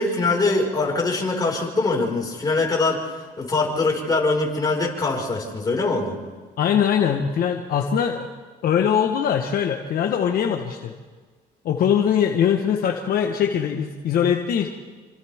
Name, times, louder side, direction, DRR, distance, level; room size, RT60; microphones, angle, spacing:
voice 1, 0.0-6.2, left 3 dB, 25° left, -1 dB, 5.4 m, -23 dB
voice 2, 6.6-8.3 8.6-10.9 11.6-14.7, left 8 dB, 60° left, 3 dB, 1.4 m, -22 dB
27.5 x 26.0 x 3.7 m, 1.4 s
cardioid pair, 110°, 17 cm